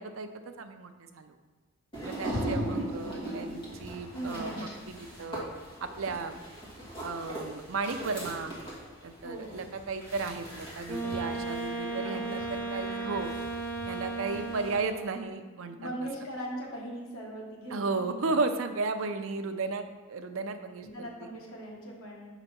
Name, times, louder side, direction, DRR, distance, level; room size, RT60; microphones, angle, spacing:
voice 1, 0.0-1.3 2.0-5.4 5.8-6.4 7.0-8.5 9.0-13.3 13.9-15.8 17.7-19.8 20.1-20.8, right 4 dB, 65° right, 7 dB, 0.5 m, -34 dB
sound 1, 1.9-14.8, equal, 25° left, 1.7 m, -40 dB
voice 2, 2.8-3.2 4.1-4.6 9.2-9.7 11.0-11.4 11.9-12.9 14.3-14.4 15.8-18.4 20.8-22.4, right 1 dB, 90° left, -2 dB, 1.5 m, -41 dB
Wind instrument woodwind instrument, 10.9-15.2, right 3 dB, 5° left, 1.0 m, -35 dB
5.3 x 4.0 x 5.7 m, 1.3 s
head